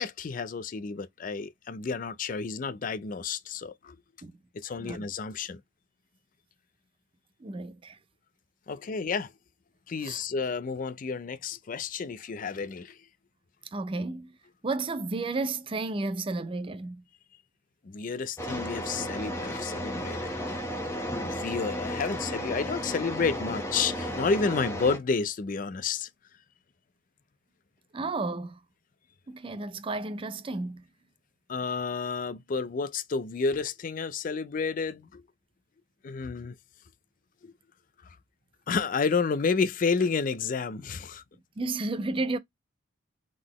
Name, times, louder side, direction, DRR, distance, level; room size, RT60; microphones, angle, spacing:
voice 1, 0.0-4.0 4.5-5.6 8.7-9.3 9.9-13.0 17.8-20.6 21.2-26.1 31.5-35.2 36.0-36.6 37.4-37.5 38.1-38.2 38.7-41.2, left 5 dB, 45° left, 0.4 m, -30 dB
voice 2, 7.4-8.0 10.0-10.2 13.7-14.4 14.6-17.0 27.9-28.6 29.3-30.8 41.6-42.4, right 3 dB, 25° right, 0.4 m, -32 dB
sound 1, 18.4-25.0, equal, 15° left, 1.0 m, -34 dB
3.9 x 3.8 x 3.0 m
head